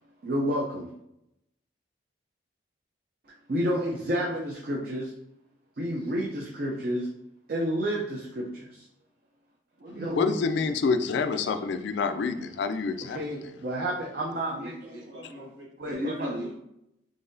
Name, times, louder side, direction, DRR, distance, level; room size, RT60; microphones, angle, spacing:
voice 1, 0.2-0.9 3.5-5.1 5.8-7.1 7.5-8.9 9.8-10.3 12.4-12.5 13.1-15.0 15.8-16.5, equal, 50° right, -2 dB, 0.5 m, -30 dB
voice 2, 10.1-13.2, left 4 dB, 65° left, 8 dB, 0.3 m, -27 dB
voice 3, 14.9-15.7 16.1-16.5, right 1 dB, 75° right, -3 dB, 1.3 m, -47 dB
3.9 x 3.6 x 2.6 m, 0.80 s
head